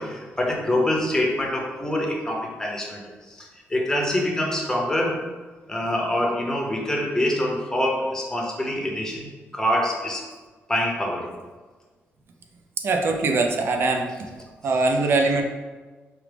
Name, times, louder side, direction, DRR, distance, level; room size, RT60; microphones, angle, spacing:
voice 1, 0.0-5.3 5.7-10.2 10.7-11.3, left 1 dB, 10° left, -1 dB, 0.7 m, -25 dB
voice 2, 12.8-14.1 14.6-15.4, right 3 dB, 55° right, 3 dB, 0.5 m, -22 dB
4.6 x 2.0 x 3.3 m, 1.3 s
cardioid pair, 115°, 5 cm